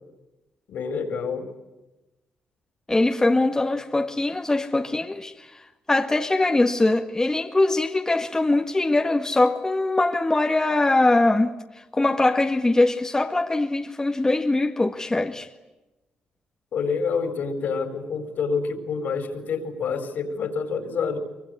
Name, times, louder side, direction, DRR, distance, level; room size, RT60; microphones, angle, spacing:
voice 1, 0.7-1.5 16.7-21.2, left 5 dB, 70° left, 4.8 m, -27 dB
voice 2, 2.9-5.5 5.9-11.5 11.9-15.5, left 2 dB, 20° left, 1.8 m, -22 dB
24.5 x 24.0 x 9.8 m
cardioid pair, 75°, 3 cm